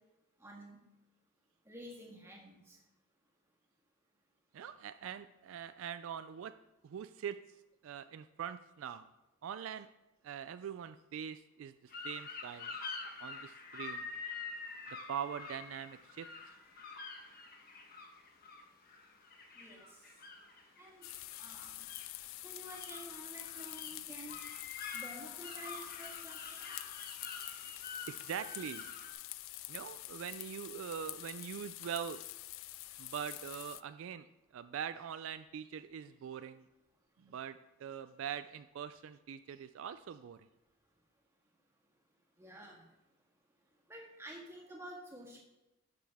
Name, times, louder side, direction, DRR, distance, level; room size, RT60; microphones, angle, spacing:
voice 1, 0.4-0.8 1.6-2.8 19.5-20.0 20.8-21.1 21.4-21.9 22.4-24.4 24.9-26.7 42.4-42.9 43.9-45.4, right 1 dB, 10° right, -2 dB, 1.7 m, -50 dB
voice 2, 4.5-6.5 6.8-7.4 7.8-9.1 9.4-9.9 10.2-12.7 13.2-14.1 15.1-16.3 28.1-28.8 29.7-32.2 33.0-34.3 34.5-36.6 37.2-40.5, right 8 dB, 65° right, 12 dB, 0.3 m, -43 dB
sound 1, 11.9-29.1, left 4 dB, 45° left, 1.2 m, -47 dB
sound 2, 21.0-33.8, left 17 dB, 65° left, 0.3 m, -46 dB
11.5 x 6.6 x 3.5 m, 0.97 s
head